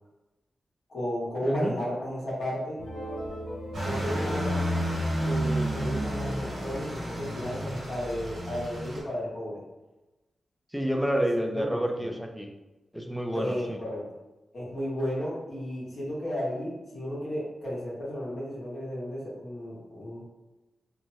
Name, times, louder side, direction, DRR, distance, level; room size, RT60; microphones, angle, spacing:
voice 1, 0.9-2.8 3.8-4.6 5.2-9.6 11.1-11.2 11.5-12.1 13.3-14.0 14.5-20.3, equal, 60° left, -7 dB, 1.5 m, -33 dB
voice 2, 1.4-1.7 10.7-12.5 12.9-13.8, equal, ahead, 2 dB, 0.4 m, -29 dB
sound 1, 2.8-7.8, equal, 85° left, 0.6 m, -39 dB
sound 2, 3.7-9.0, right 1 dB, 70° right, 1.1 m, -31 dB
3.1 x 2.2 x 2.7 m, 1.0 s
wide cardioid pair, 95°, 0 cm